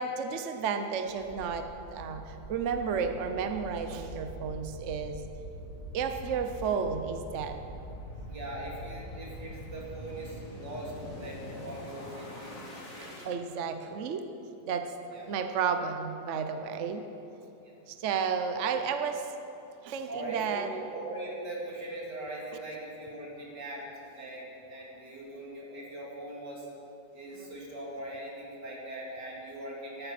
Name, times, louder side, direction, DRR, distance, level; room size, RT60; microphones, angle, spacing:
voice 1, 0.0-5.2 5.9-7.6 13.2-14.2 14.7-14.9 15.3-17.0 17.9-19.3 19.8-20.7 27.3-27.4, right 6 dB, 55° right, 7 dB, 0.9 m, -32 dB
sound 1, 1.1-13.3, equal, 45° left, 2.5 m, -44 dB
voice 2, 8.3-12.6 12.9-13.1 15.1-15.3 17.6-17.8 20.1-23.8 24.1-26.7 27.1-30.1, right 1 dB, 80° right, -3 dB, 3.2 m, -40 dB
13.5 x 11.5 x 5.9 m, 2.8 s
omnidirectional pair, 1.8 m